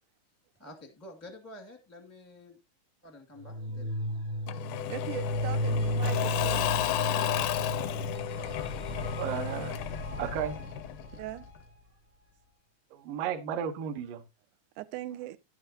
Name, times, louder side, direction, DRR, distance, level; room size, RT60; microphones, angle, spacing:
voice 1, 0.6-2.6 3.0-3.9, left 1 dB, 15° left, 0.6 m, -49 dB
sound 1, 3.4-11.7, equal, 45° right, 0.8 m, -34 dB
Engine / Mechanisms / Drill, 4.5-11.2, left 14 dB, 80° left, 1.8 m, -33 dB
voice 2, 4.9-6.8 7.1-7.3 11.1-11.5 14.8-15.4, right 16 dB, 90° right, 1.8 m, -40 dB
voice 3, 8.9-9.8 10.2-10.6 12.9-14.2, right 8 dB, 70° right, 2.5 m, -34 dB
11.0 x 9.5 x 2.8 m
omnidirectional pair, 4.3 m